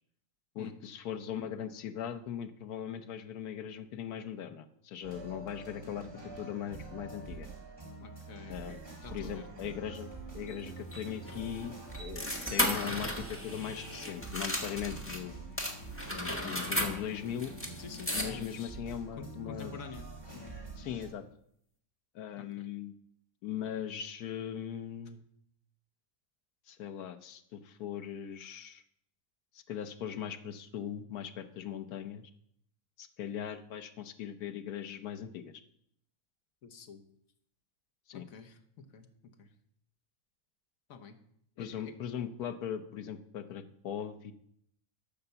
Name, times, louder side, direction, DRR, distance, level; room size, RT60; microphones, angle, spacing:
voice 1, 0.5-7.5 8.5-8.8 9.1-10.1 10.3-15.3 16.1-17.5 18.1-19.8 20.8-21.2 22.1-22.9 23.4-25.2 26.7-28.8 29.5-32.3 33.0-35.5 38.1-38.2 41.6-44.3, left 9 dB, 85° left, 9 dB, 1.3 m, -39 dB
sound 1, 5.0-21.1, right 3 dB, 15° right, 2.8 m, -46 dB
voice 2, 8.0-9.4 17.8-18.7 19.2-20.5 22.4-22.7 36.6-37.0 38.1-39.5 40.9-41.2 41.6-41.9, left 5 dB, 65° left, 6 dB, 1.5 m, -49 dB
sound 2, 10.5-15.2 15.6-18.6, left 1 dB, 10° left, 1.4 m, -36 dB
12.5 x 5.8 x 6.9 m, 0.72 s
omnidirectional pair, 1.6 m